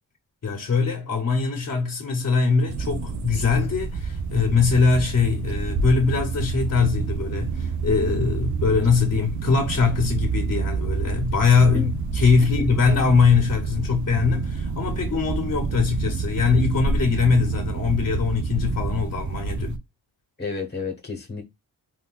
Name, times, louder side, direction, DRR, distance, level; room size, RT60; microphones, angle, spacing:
voice 1, 0.4-19.8, left 5 dB, 45° left, 1.0 m, -22 dB
sound 1, 2.7-19.8, right 5 dB, 50° right, 0.5 m, -28 dB
voice 2, 20.4-21.4, left 4 dB, 25° left, 1.2 m, -31 dB
3.7 x 2.7 x 2.4 m
cardioid pair, 105°, 37 cm